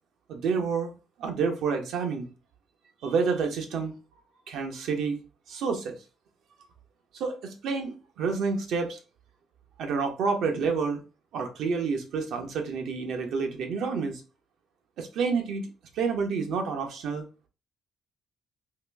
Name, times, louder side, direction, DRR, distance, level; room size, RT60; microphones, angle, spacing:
voice 1, 0.3-0.9 1.2-2.3 3.0-4.0 4.5-5.2 5.5-6.0 7.1-9.0 9.8-11.0 11.3-14.2 15.0-17.2, right 5 dB, 80° right, 4 dB, 0.9 m, -29 dB
3.0 x 2.9 x 3.4 m, 0.33 s
cardioid pair, 90°, 0 cm